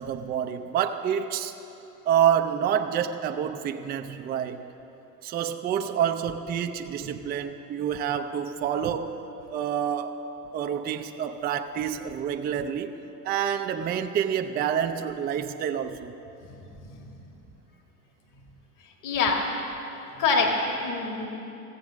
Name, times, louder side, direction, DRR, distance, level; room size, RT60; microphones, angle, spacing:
voice 1, 0.0-1.5 2.1-4.6 5.2-9.1 9.5-10.2 10.5-12.9 13.2-16.1, right 9 dB, 20° right, 6 dB, 0.4 m, -27 dB
voice 2, 19.0-19.4 20.2-21.3, left 4 dB, 40° left, 2 dB, 1.8 m, -25 dB
14.5 x 7.8 x 6.2 m, 3.0 s
hypercardioid pair, 90°, 47 cm